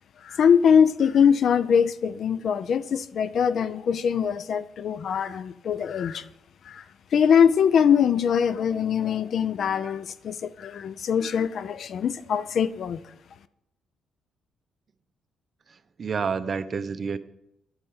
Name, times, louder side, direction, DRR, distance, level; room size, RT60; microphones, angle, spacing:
voice 1, 0.2-6.2 6.7-6.8 7.1-13.0, left 7 dB, 60° left, 0.5 m, -22 dB
voice 2, 15.7-17.2, right 5 dB, 45° right, 0.6 m, -29 dB
8.8 x 5.7 x 7.8 m
cardioid pair, 90°, 0 cm